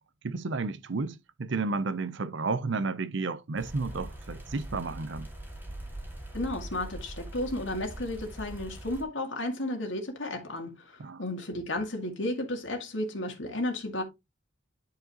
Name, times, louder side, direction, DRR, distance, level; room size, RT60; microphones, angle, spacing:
voice 1, 0.2-5.3 11.0-11.2, right 3 dB, 65° right, 0.6 m, -32 dB
sound 1, 3.6-9.0, right 1 dB, 10° right, 2.1 m, -42 dB
voice 2, 6.3-14.0, left 1 dB, 70° left, 2.1 m, -33 dB
10.5 x 4.7 x 2.9 m
head